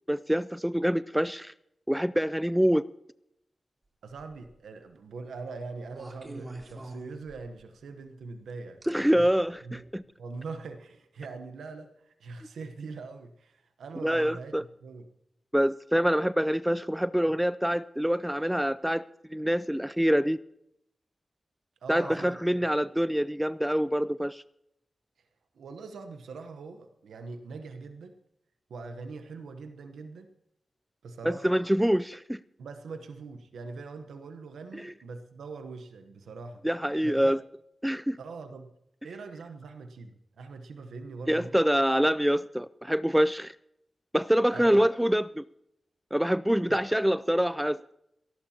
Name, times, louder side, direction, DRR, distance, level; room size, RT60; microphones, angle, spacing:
voice 1, 0.1-1.5 1.9-2.8 8.9-10.0 14.0-14.6 15.5-19.0 19.3-20.4 21.9-24.4 31.2-32.4 34.7-34.9 36.6-37.4 37.8-38.2 41.3-43.5 44.1-45.4 46.1-47.8, equal, 5° right, 16 dB, 0.4 m, -25 dB
voice 2, 4.0-9.3 9.6-9.8 10.2-15.1 21.8-22.4 25.5-28.1 28.7-30.3 31.0-31.5 32.6-36.6 37.0-37.3 38.2-38.7 39.0-41.5 44.5-44.8 46.7-46.8, right 4 dB, 90° right, 7 dB, 1.0 m, -42 dB
sound 1, 4.2-4.6 5.9-7.7 8.8-8.9 9.8-9.9, right 2 dB, 45° right, 3.2 m, -44 dB
28.0 x 11.5 x 2.9 m, 0.78 s
cardioid pair, 40°, 0 cm